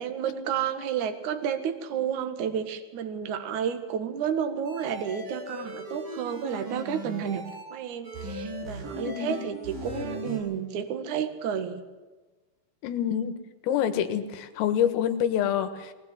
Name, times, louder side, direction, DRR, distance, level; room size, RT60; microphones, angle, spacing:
voice 1, 0.0-7.4 7.7-11.8, right 8 dB, 60° right, 7 dB, 2.1 m, -31 dB
sound 1, 4.7-7.6 8.0-10.4, right 1 dB, 45° right, 7.8 m, -38 dB
voice 2, 9.1-9.4 12.8-13.3 13.6-15.9, left 9 dB, 85° left, 9 dB, 4.1 m, -26 dB
21.5 x 19.5 x 7.8 m, 1.2 s
omnidirectional pair, 5.8 m